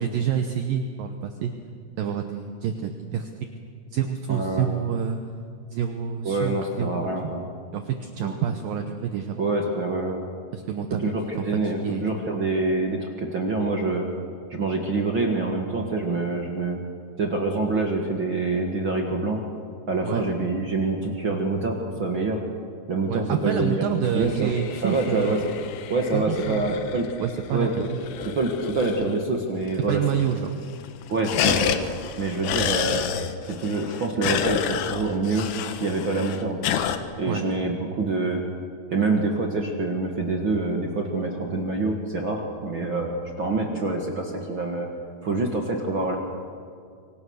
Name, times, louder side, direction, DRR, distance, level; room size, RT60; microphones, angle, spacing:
voice 1, 0.0-1.5 2.0-3.3 3.9-5.2 5.7-7.3 7.7-9.4 10.5-11.1 11.8-12.0 20.0-20.2 23.1-25.4 26.1-26.7 27.2-28.0 29.9-30.5 37.3-37.4, right 8 dB, 70° right, 6 dB, 2.3 m, -28 dB
voice 2, 4.3-4.7 6.2-7.5 8.2-8.4 9.4-10.2 11.0-14.1 14.5-16.8 17.2-19.4 19.9-22.4 22.9-23.9 24.1-24.6 24.8-25.5 25.9-27.1 27.5-27.9 28.3-30.0 31.1-31.8 32.2-33.1 33.4-36.6 37.2-38.4 38.9-44.9 45.2-46.1, right 3 dB, 55° right, 1 dB, 1.4 m, -26 dB
sound 1, 24.0-29.4 29.7-29.8 30.0-30.5 30.8-37.0, left 9 dB, 75° left, 3.1 m, -30 dB
26.5 x 24.5 x 6.5 m, 2.2 s
omnidirectional pair, 5.1 m